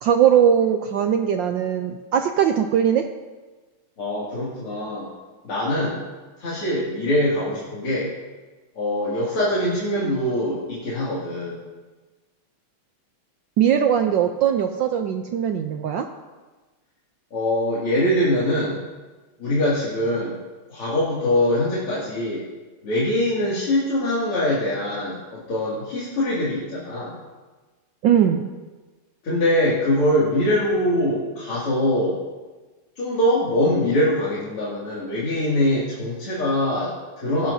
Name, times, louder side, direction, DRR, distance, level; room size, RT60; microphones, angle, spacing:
voice 1, 0.0-3.0 13.6-16.1 28.0-28.5, right 9 dB, 70° right, 5 dB, 1.2 m, -20 dB
voice 2, 4.0-5.1 5.4-6.0 6.4-8.1 8.8-11.6 17.3-18.8 19.4-20.4 20.7-22.4 22.8-27.2 29.2-32.2 33.0-37.5, left 1 dB, 80° left, -8 dB, 3.4 m, -23 dB
17.5 x 12.5 x 2.7 m, 1.3 s
omnidirectional pair, 2.4 m